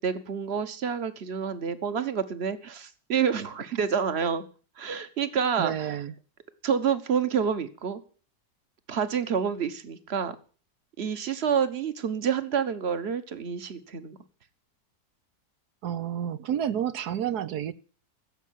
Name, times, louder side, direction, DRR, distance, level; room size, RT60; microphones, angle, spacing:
voice 1, 0.0-4.4 4.8-5.9 6.6-8.0 8.9-10.3 11.0-14.2, right 7 dB, 40° right, 1.4 m, -28 dB
voice 2, 5.6-6.1 15.8-17.7, right 9 dB, 75° right, 1.4 m, -30 dB
15.0 x 7.6 x 9.2 m
omnidirectional pair, 1.7 m